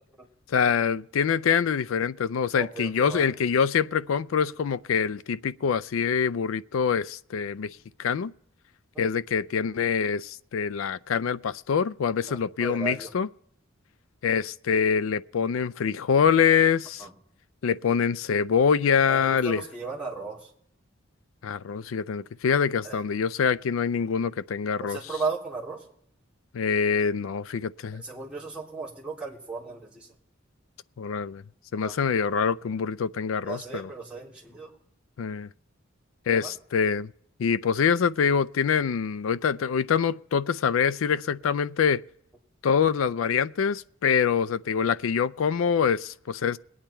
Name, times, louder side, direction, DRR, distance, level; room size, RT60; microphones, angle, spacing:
voice 1, 0.5-8.3 9.0-13.3 14.2-17.1 17.6-19.6 21.4-25.0 26.5-28.0 31.0-31.4 31.7-33.9 35.2-35.5 36.3-37.1 37.4-42.0 42.6-46.6, left 6 dB, 80° left, 0.4 m, -25 dB
voice 2, 2.5-3.3 8.9-9.1 12.3-13.1 17.0-17.1 19.1-20.5 22.8-23.0 24.8-25.8 27.9-30.1 31.8-32.0 33.4-34.7 36.3-36.5, right 4 dB, 5° right, 3.1 m, -36 dB
21.5 x 8.8 x 4.4 m
head